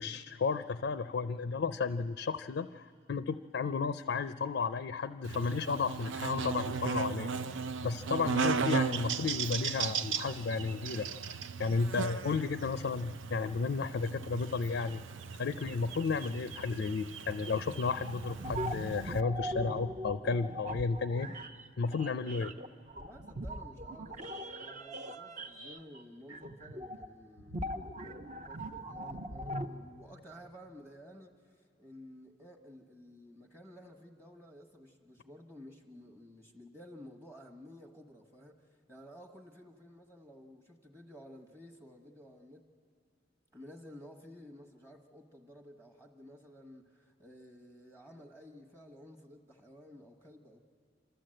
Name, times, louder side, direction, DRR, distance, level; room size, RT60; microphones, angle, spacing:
voice 1, 0.0-7.3 7.8-11.1 11.6-15.0 15.4-21.5 21.8-22.5, left 4 dB, 65° left, 11 dB, 0.4 m, -33 dB
Buzz, 5.2-19.2, right 5 dB, 85° right, 0.6 m, -37 dB
sound 1, 18.0-26.0 26.3-27.1 27.4-29.7, equal, 45° right, 0.8 m, -41 dB
voice 2, 23.0-42.7 43.5-50.6, equal, 15° right, 1 dB, 1.1 m, -53 dB
27.5 x 13.5 x 7.7 m, 2.4 s
head